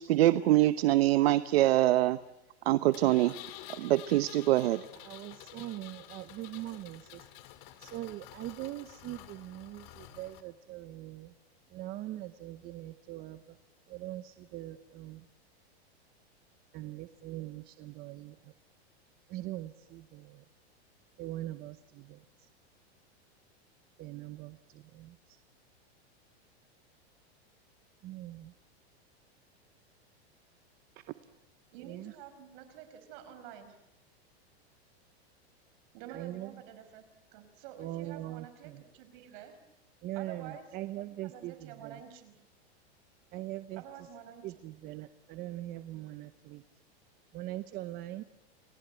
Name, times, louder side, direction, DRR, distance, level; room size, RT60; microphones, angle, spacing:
voice 1, 0.1-2.2 2.7-3.4 3.8-4.8, right 15 dB, 65° right, 14 dB, 1.0 m, -24 dB
Engine, 2.9-10.4, left 13 dB, 40° left, 2.4 m, -50 dB
voice 2, 5.0-7.3 7.8-11.3 11.7-13.6 13.9-15.3 16.7-18.5 19.3-20.4 21.2-22.5 24.0-25.4 28.0-28.5 31.1-31.2 31.8-32.2 36.1-36.6 37.8-38.8 40.0-42.0 43.3-43.8 44.4-46.6 47.3-48.2, right 15 dB, 30° right, 11 dB, 0.9 m, -42 dB
voice 3, 31.7-33.8 35.9-37.0 37.3-39.6 40.1-40.7 41.0-42.4 43.8-44.6, right 9 dB, 50° right, 9 dB, 5.4 m, -49 dB
29.5 x 19.5 x 9.1 m, 0.98 s
supercardioid pair, 155°, 33 cm